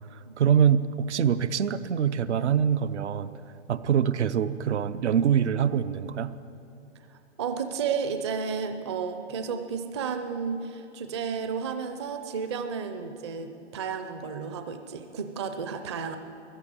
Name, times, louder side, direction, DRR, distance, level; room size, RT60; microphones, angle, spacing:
voice 1, 0.1-3.3 3.7-6.3, right 8 dB, 70° right, 13 dB, 0.8 m, -24 dB
voice 2, 7.4-16.2, right 6 dB, 25° right, 7 dB, 0.5 m, -32 dB
15.0 x 11.0 x 8.3 m, 2.9 s
hypercardioid pair, 160°, 35 cm